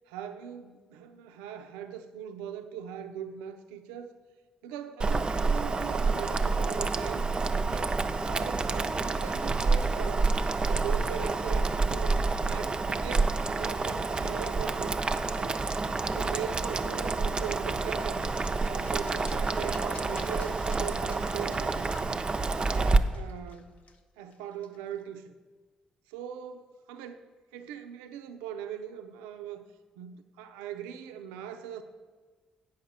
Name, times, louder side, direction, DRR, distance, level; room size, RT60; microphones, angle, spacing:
voice 1, 0.1-4.2 4.6-7.3 7.6-12.2 12.5-15.0 15.4-15.7 16.1-21.9 22.7-23.7 24.2-25.3 26.1-27.3 27.5-29.6 30.0-31.8, right 9 dB, 85° right, 8 dB, 0.5 m, -40 dB
Boiling, 5.0-23.0, right 3 dB, 35° right, 0.6 m, -28 dB
sound 1, 17.8-25.0, left 4 dB, 60° left, 0.8 m, -53 dB
8.7 x 5.4 x 6.6 m, 1.4 s
hypercardioid pair, 50°, 3 cm